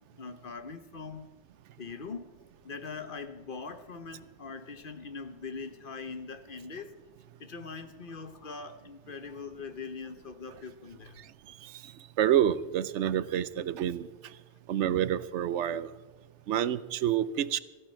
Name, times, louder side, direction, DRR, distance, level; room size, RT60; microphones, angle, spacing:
voice 1, 0.1-1.3 1.8-2.3 2.6-7.0 7.4-11.2 14.9-15.0, left 4 dB, 50° left, 9 dB, 1.1 m, -42 dB
voice 2, 12.2-14.1 14.7-15.9 16.5-17.6, right 10 dB, 85° right, 16 dB, 1.0 m, -28 dB
17.0 x 15.0 x 4.5 m, 1.3 s
omnidirectional pair, 1.2 m